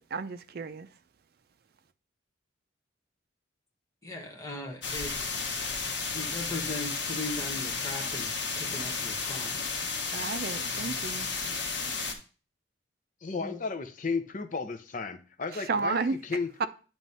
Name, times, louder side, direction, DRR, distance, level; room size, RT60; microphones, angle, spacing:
voice 1, 0.1-0.9 10.1-11.3 15.7-16.2 16.6-16.7, right 4 dB, 55° right, 0.5 m, -31 dB
voice 2, 4.0-5.6 6.1-8.3 8.6-9.7 11.4-12.1 13.3-13.6, left 2 dB, 15° left, 1.2 m, -39 dB
sound 1, 4.8-12.1, left 4 dB, 80° left, 1.3 m, -33 dB
voice 3, 13.2-16.7, left 4 dB, 45° left, 0.6 m, -34 dB
9.1 x 3.1 x 5.4 m
head